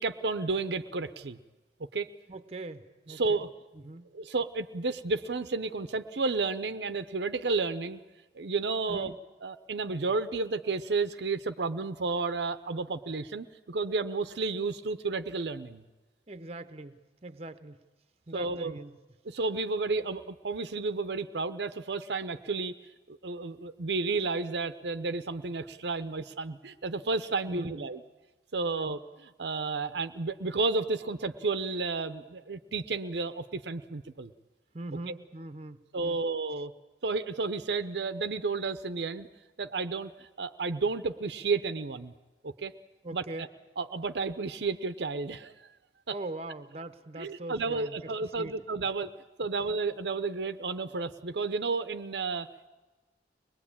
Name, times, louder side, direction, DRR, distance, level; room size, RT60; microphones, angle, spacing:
voice 1, 0.0-1.4 1.9-2.1 3.2-3.5 4.1-8.0 8.3-9.1 9.4-15.8 18.3-18.7 19.2-22.7 23.1-28.0 28.5-29.0 29.4-34.3 35.9-36.7 37.0-39.3 39.6-42.1 42.4-42.7 43.1-43.5 43.8-45.5 46.1-46.2 47.2-49.1 49.4-52.7, right 3 dB, 75° right, 11 dB, 0.7 m, -32 dB
voice 2, 2.3-3.4 3.7-4.2 8.9-9.2 16.3-17.8 18.3-19.0 27.5-27.9 28.7-28.9 34.7-36.2 43.0-43.5 46.1-48.5, right 2 dB, 35° right, 11 dB, 0.8 m, -42 dB
23.5 x 20.5 x 8.7 m, 1.2 s
head